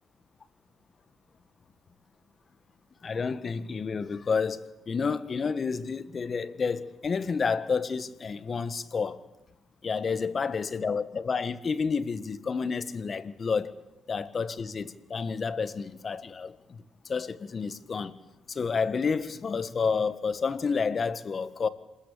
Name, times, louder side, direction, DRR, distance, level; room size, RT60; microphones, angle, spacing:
voice 1, 3.0-9.2 9.8-13.7 14.1-18.1 18.5-21.7, left 5 dB, 40° left, 1.7 m, -30 dB
27.0 x 20.5 x 8.6 m
cardioid pair, 90°, 0 cm